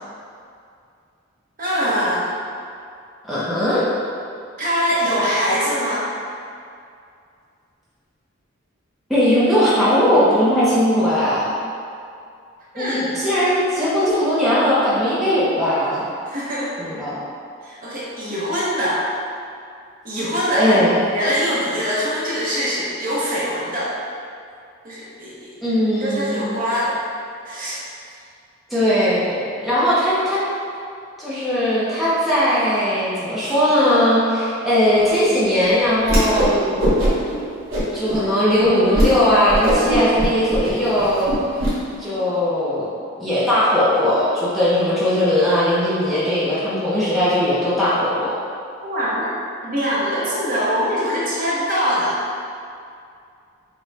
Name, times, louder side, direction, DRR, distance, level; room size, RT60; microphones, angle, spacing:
voice 1, 1.6-2.3 3.5-3.6 4.6-6.0 12.7-13.1 16.3-16.7 17.6-19.1 20.0-20.8 21.1-23.9 24.8-25.3 26.0-26.9 27.4-27.8 48.8-49.3 49.6-52.2, equal, 40° right, -7 dB, 1.0 m, -23 dB
voice 2, 3.2-3.8 9.1-11.5 12.8-16.0 16.8-17.2 20.5-21.0 25.6-26.6 28.7-30.4 31.2-36.8 37.1-37.2 37.9-41.3 42.0-42.9 43.2-48.3, equal, ahead, -11 dB, 0.7 m, -19 dB
Whoosh swoosh swish, 36.0-36.5 36.8-37.3 37.7-38.2 38.6-38.7 38.9-39.1 39.5-41.7, right 1 dB, 85° right, 1.5 m, -20 dB
6.4 x 2.3 x 3.4 m, 2.4 s
head